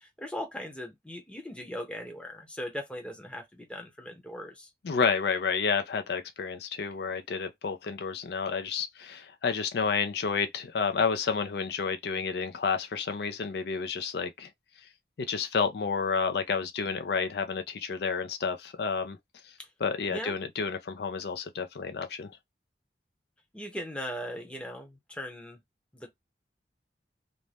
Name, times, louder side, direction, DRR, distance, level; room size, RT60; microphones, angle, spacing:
voice 1, 0.0-4.7 19.6-19.7 20.1-20.4 23.5-25.6 25.9-26.1, equal, 5° left, 0.7 m, -39 dB
voice 2, 4.8-14.5 15.3-19.2 19.8-22.3, left 5 dB, 65° left, 0.4 m, -30 dB
2.6 x 2.1 x 3.2 m
head